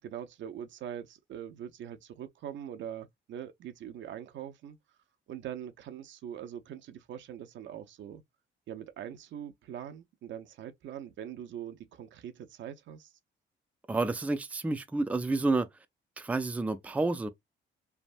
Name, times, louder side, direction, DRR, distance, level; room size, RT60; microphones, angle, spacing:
voice 1, 0.0-4.8 5.3-8.2 8.7-13.1, right 10 dB, 70° right, 0.6 m, -42 dB
voice 2, 13.9-15.7 16.2-17.3, right 3 dB, 5° right, 0.4 m, -29 dB
3.3 x 2.1 x 2.5 m
cardioid pair, 90°, 20 cm